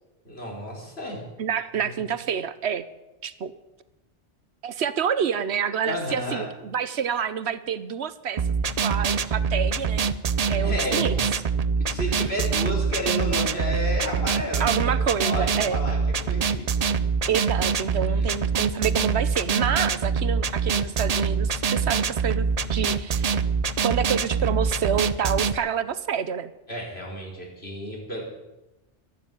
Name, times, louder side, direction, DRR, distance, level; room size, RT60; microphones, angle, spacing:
voice 1, 0.2-1.2 1.8-1.9 5.8-6.5 10.4-11.2 11.8-16.9 18.1-18.3 26.7-28.3, equal, 60° left, -2 dB, 5.0 m, -32 dB
voice 2, 1.4-2.9 3.2-3.5 4.6-8.4 8.8-10.1 10.5-11.2 14.6-15.8 17.3-22.4 22.7-23.4 23.8-26.5, right 7 dB, 70° right, 14 dB, 1.0 m, -28 dB
sound 1, 8.4-25.5, right 5 dB, 45° right, 0.6 m, -24 dB
12.5 x 12.0 x 9.1 m, 0.99 s
omnidirectional pair, 1.2 m